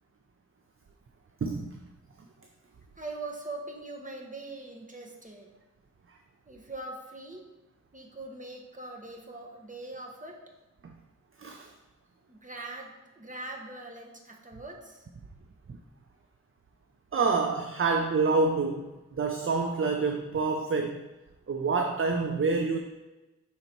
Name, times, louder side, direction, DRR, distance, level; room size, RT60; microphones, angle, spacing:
voice 1, 1.4-1.8 6.1-6.2 10.8-10.9 11.4-11.7 15.7-15.8 17.1-21.0 21.5-22.8, right 4 dB, 40° right, 4 dB, 0.5 m, -27 dB
voice 2, 3.0-5.5 6.5-7.4 7.9-10.4 12.3-15.1, right 2 dB, 25° right, 1 dB, 1.1 m, -42 dB
5.6 x 3.9 x 4.5 m, 1.1 s
wide cardioid pair, 55°, 31 cm